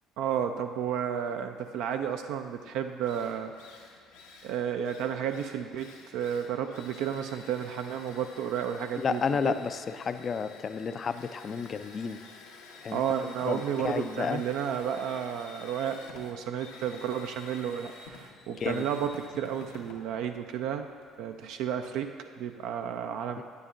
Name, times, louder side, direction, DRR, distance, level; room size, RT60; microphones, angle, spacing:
voice 1, 0.2-3.5 4.4-9.6 12.9-20.9 21.2-23.4, right 8 dB, 70° right, 5 dB, 0.3 m, -32 dB
Drill, 2.6-2.7 3.0-21.2, left 3 dB, 80° left, 0.8 m, -50 dB
voice 2, 9.0-12.2 12.8-13.0 13.4-14.4 18.6-18.8 23.4-23.5, left 6 dB, 40° left, 12 dB, 0.3 m, -31 dB
9.8 x 9.2 x 2.5 m, 2.1 s
hypercardioid pair, 60°, 0 cm